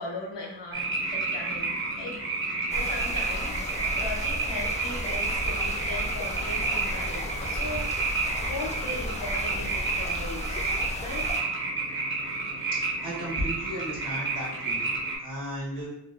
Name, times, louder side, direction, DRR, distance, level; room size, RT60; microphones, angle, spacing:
voice 1, 0.0-2.2 2.7-3.7 3.9-7.9 8.4-11.2, left 2 dB, 80° left, -1 dB, 0.7 m, -38 dB
sound 1, 0.7-15.2, right 3 dB, 30° right, 0.7 m, -30 dB
sound 2, 2.7-11.4, left 1 dB, 20° left, 0.4 m, -35 dB
voice 2, 13.0-14.9 15.2-15.9, equal, 45° right, -5 dB, 1.3 m, -34 dB
2.7 x 2.2 x 2.3 m, 0.81 s
wide cardioid pair, 40°, 42 cm